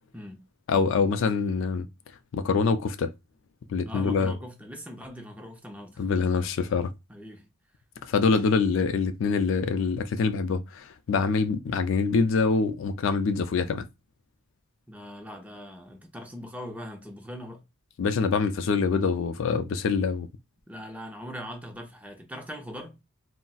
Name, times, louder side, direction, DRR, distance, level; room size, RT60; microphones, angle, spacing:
voice 1, 0.7-1.9 2.3-3.1 3.7-4.3 6.0-6.9 8.1-13.9 18.0-20.3, left 4 dB, 65° left, 0.3 m, -25 dB
voice 2, 3.8-6.1 7.1-7.5 14.9-17.6 20.7-23.0, equal, 5° right, 0.5 m, -41 dB
3.9 x 2.0 x 2.3 m
head